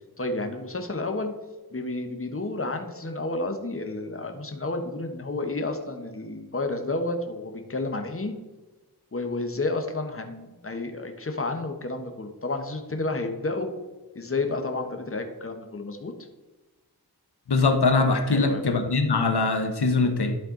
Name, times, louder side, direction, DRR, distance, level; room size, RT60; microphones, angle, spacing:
voice 1, 0.2-1.3 1.7-8.3 9.1-13.7 14.1-16.1 18.3-18.6, left 2 dB, 35° left, 5 dB, 1.2 m, -31 dB
voice 2, 17.5-20.4, left 3 dB, 80° left, 6 dB, 1.1 m, -22 dB
11.5 x 4.5 x 3.9 m, 1.2 s
wide cardioid pair, 45°, 39 cm